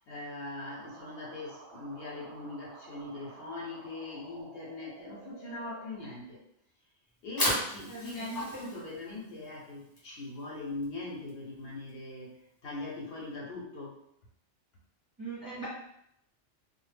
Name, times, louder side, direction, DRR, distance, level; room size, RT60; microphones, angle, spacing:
voice 1, 0.1-6.4 7.2-14.0, left 2 dB, 60° left, -3 dB, 0.7 m, -41 dB
sound 1, 0.6-5.9, right 4 dB, 65° right, 0.7 m, -51 dB
Fire, 7.1-13.3, equal, 25° left, 0.5 m, -37 dB
voice 2, 7.9-8.6 15.2-15.7, right 2 dB, 25° right, -8 dB, 0.5 m, -40 dB
2.0 x 2.0 x 3.3 m, 0.75 s
omnidirectional pair, 1.2 m